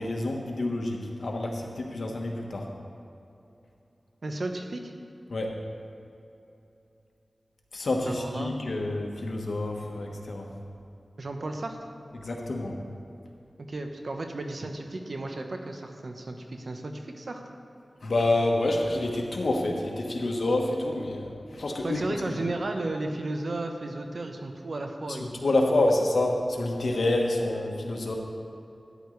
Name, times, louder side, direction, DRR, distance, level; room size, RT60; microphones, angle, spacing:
voice 1, 0.0-2.7 5.3-5.6 7.7-10.5 12.1-12.8 18.0-22.4 25.1-28.1, left 2 dB, 75° left, 1 dB, 1.3 m, -28 dB
voice 2, 4.2-4.9 8.1-8.5 11.2-11.9 13.6-17.4 21.8-25.3, right 2 dB, 65° right, 4 dB, 1.0 m, -34 dB
13.0 x 10.0 x 3.3 m, 2.8 s
cardioid pair, 50°, 0 cm